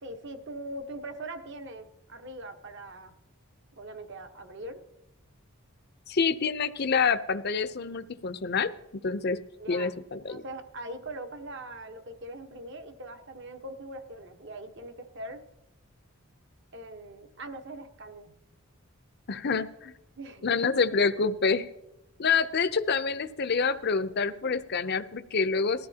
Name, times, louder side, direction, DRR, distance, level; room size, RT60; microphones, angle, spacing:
voice 1, 0.0-3.1 3.8-4.8 9.6-9.9 10.3-15.4 16.7-18.4 20.2-21.0, right 1 dB, 55° right, 6 dB, 1.2 m, -41 dB
voice 2, 6.1-8.7 9.0-9.4 9.7-10.4 19.3-19.9 20.4-21.7 22.2-25.9, left 5 dB, 50° left, 11 dB, 0.7 m, -27 dB
19.5 x 14.0 x 2.9 m, 0.91 s
head